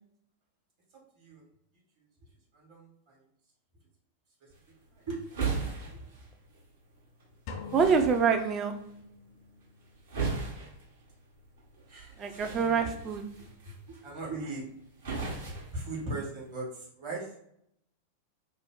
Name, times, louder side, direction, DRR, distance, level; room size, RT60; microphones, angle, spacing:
voice 1, 0.9-1.4 2.5-3.2 5.0-5.2 5.9-6.0 11.9-12.9 13.4-13.7 14.0-14.6 15.7-17.4, right 2 dB, 45° right, -3 dB, 1.3 m, -39 dB
sound 1, 4.5-16.5, right 4 dB, 60° right, 1.1 m, -39 dB
sound 2, 7.5-9.5, left 5 dB, 40° left, 0.4 m, -43 dB
voice 2, 7.7-8.7 12.2-13.2, right 5 dB, 30° right, 6 dB, 0.4 m, -26 dB
2.6 x 2.1 x 3.6 m, 0.73 s
figure-of-eight pair, 90°, 0 cm